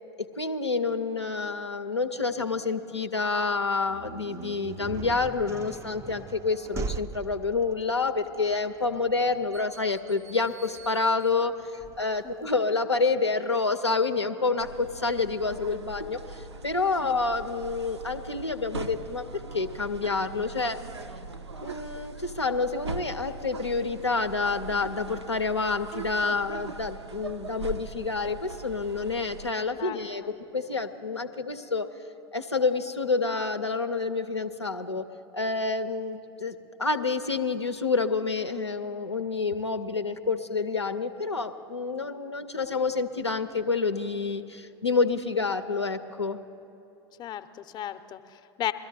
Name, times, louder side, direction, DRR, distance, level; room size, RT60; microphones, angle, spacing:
voice 1, 0.2-19.2 19.5-20.8 21.6-31.9 32.3-35.0 35.3-46.4, left 4 dB, 90° left, 7 dB, 0.5 m, -28 dB
sound 1, 3.8-12.5, right 5 dB, 20° right, 0.3 m, -41 dB
sound 2, 14.6-29.5, right 3 dB, 80° right, 0.5 m, -41 dB
voice 2, 29.8-30.3 47.2-48.7, left 11 dB, 30° left, 10 dB, 0.6 m, -35 dB
22.5 x 13.0 x 2.7 m, 2.7 s
figure-of-eight pair, 85°, 14 cm